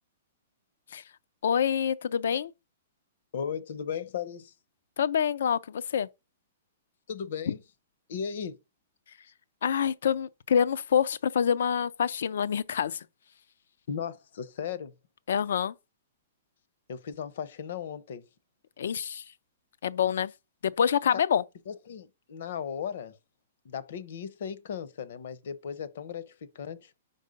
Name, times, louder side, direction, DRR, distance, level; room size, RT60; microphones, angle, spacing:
voice 1, 1.4-2.5 5.0-6.1 7.5-7.6 9.6-13.0 15.3-15.7 18.8-19.2 19.8-20.3 20.6-21.4, left 8 dB, 75° left, 0.4 m, -26 dB
voice 2, 3.3-4.5 7.1-7.6 8.1-8.6 13.9-14.9 16.9-18.2 21.1-21.2 21.7-23.2 23.6-26.9, left 7 dB, 60° left, 0.8 m, -36 dB
5.4 x 4.5 x 5.2 m
hypercardioid pair, 165°, 0 cm